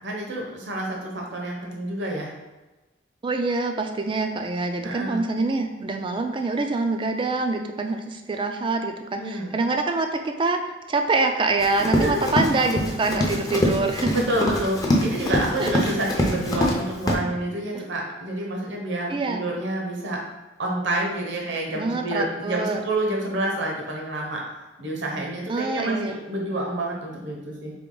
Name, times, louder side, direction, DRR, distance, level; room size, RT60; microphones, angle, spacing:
voice 1, 0.0-2.3 4.8-5.2 9.2-9.5 12.0-12.2 14.1-20.2 20.6-24.4 24.8-27.7, right 1 dB, 70° right, -1 dB, 0.9 m, -28 dB
voice 2, 3.2-14.2 15.6-15.7 19.1-19.4 21.7-22.8 25.5-26.2, right 3 dB, 25° right, 5 dB, 0.4 m, -25 dB
Run, 11.6-16.8 17.1-17.2, left 1 dB, 20° left, 0.6 m, -24 dB
3.6 x 3.3 x 3.8 m, 1.1 s
head